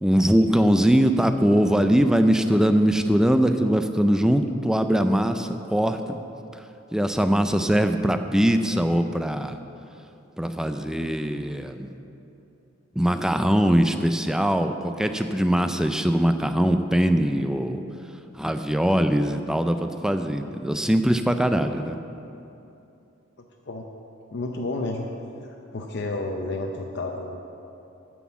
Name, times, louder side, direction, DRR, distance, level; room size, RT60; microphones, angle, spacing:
voice 1, 0.0-6.2 6.9-9.6 10.4-11.9 13.0-17.8 18.4-22.0, equal, 5° right, 8 dB, 0.3 m, -21 dB
voice 2, 24.3-25.1 25.7-27.4, left 2 dB, 55° left, 1 dB, 0.6 m, -30 dB
9.4 x 6.1 x 7.1 m, 2.8 s
head